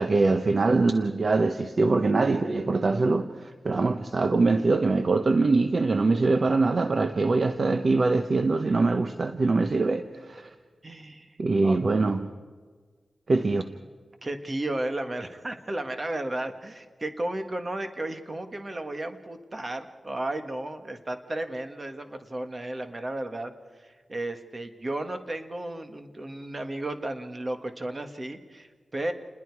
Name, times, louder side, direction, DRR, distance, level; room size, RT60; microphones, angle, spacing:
voice 1, 0.0-10.5 11.4-12.3 13.3-13.7, right 3 dB, 50° right, 0.9 m, -23 dB
voice 2, 10.8-11.8 14.2-23.5 23.8-29.1, right 1 dB, 30° right, 1.7 m, -34 dB
29.0 x 21.0 x 4.8 m
wide cardioid pair, 105°, 0 cm